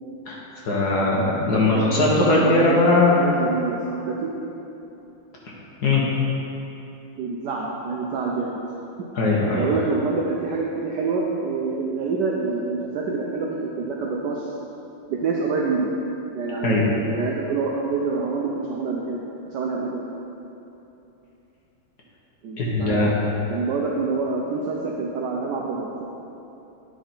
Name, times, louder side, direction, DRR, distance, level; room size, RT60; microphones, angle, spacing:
voice 1, 0.6-3.2 5.8-6.0 9.1-9.7 16.6-16.9 22.6-23.1, left 2 dB, 50° left, -4 dB, 1.6 m, -19 dB
voice 2, 1.7-2.9 3.2-4.3 7.2-8.6 9.5-14.5 15.1-15.9 16.3-19.2 19.5-20.0 22.4-23.2 23.5-26.0, right 4 dB, 65° right, -2 dB, 1.1 m, -26 dB
9.7 x 6.0 x 4.3 m, 2.9 s
omnidirectional pair, 2.4 m